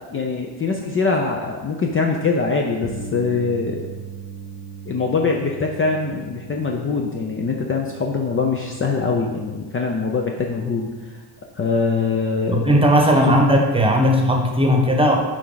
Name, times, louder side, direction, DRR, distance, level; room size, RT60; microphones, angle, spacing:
voice 1, 0.1-3.9 4.9-11.2 11.5-12.7 13.3-13.4, left 4 dB, 30° left, 1 dB, 0.6 m, -23 dB
Bass guitar, 2.8-9.1, right 5 dB, 90° left, 2.3 m, -38 dB
voice 2, 12.5-15.2, equal, 10° right, 1 dB, 1.1 m, -16 dB
7.6 x 4.8 x 3.9 m, 1.3 s
cardioid pair, 105°, 45 cm